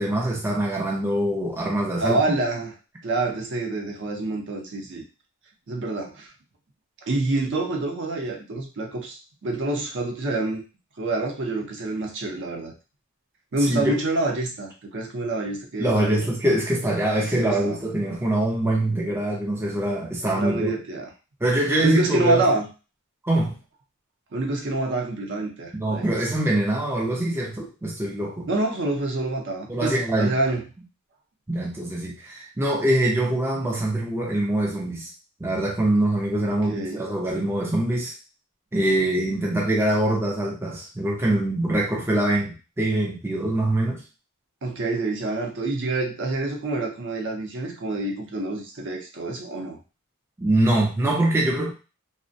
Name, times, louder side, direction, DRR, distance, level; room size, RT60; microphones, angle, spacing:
voice 1, 0.0-2.4 13.6-14.0 15.8-20.7 21.4-22.4 23.2-23.6 25.7-28.5 29.7-30.4 31.5-35.1 35.4-38.1 38.7-44.0 50.4-51.7, right 1 dB, 10° right, -2 dB, 0.4 m, -24 dB
voice 2, 2.0-2.7 3.0-5.0 5.7-6.3 7.0-10.6 11.0-12.7 13.5-16.3 17.2-17.8 20.3-21.1 21.8-22.7 24.3-26.1 28.5-30.6 36.4-37.0 44.6-49.8, right 2 dB, 55° right, 2 dB, 0.6 m, -27 dB
2.4 x 2.1 x 2.5 m, 0.31 s
head